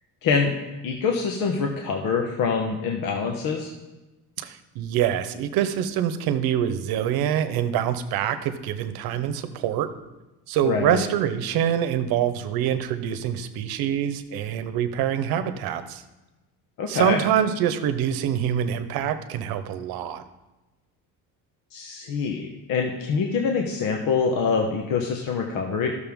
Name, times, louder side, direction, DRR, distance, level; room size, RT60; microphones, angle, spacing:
voice 1, 0.2-0.5 0.8-3.7 10.6-11.0 16.8-17.2 21.7-25.9, left 5 dB, 65° left, 2 dB, 1.1 m, -25 dB
voice 2, 4.4-9.9 10.5-16.0 16.9-20.2, right 10 dB, 75° right, 10 dB, 0.9 m, -25 dB
13.5 x 6.6 x 3.6 m, 1.1 s
cardioid pair, 145°, 37 cm